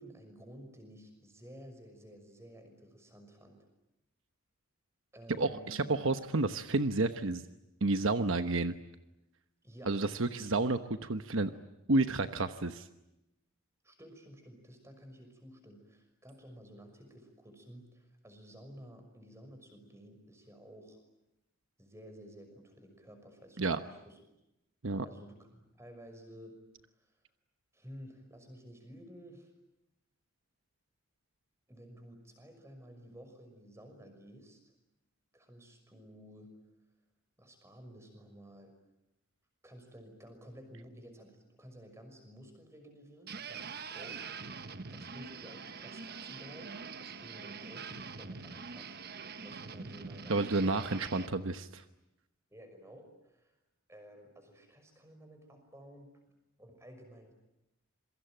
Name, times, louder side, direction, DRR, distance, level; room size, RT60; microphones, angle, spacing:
voice 1, 0.0-3.7 5.1-6.0 9.6-9.9 10.3-10.4 13.8-21.0 21.8-24.2 25.0-26.6 26.9-27.2 27.7-29.5 31.7-34.7 35.3-36.5 37.4-38.7 39.6-44.2 44.9-49.0 49.4-50.9 52.5-53.5 53.9-56.1 56.6-57.3, equal, 15° right, 6 dB, 5.9 m, -53 dB
voice 2, 5.4-7.5 7.8-8.7 9.9-11.5 11.9-12.9 23.6-23.8 24.8-25.1 50.3-51.8, right 3 dB, 65° right, 9 dB, 1.1 m, -30 dB
sound 1, 43.3-51.3, right 5 dB, 45° right, 1.2 m, -44 dB
27.5 x 23.5 x 9.1 m, 0.91 s
head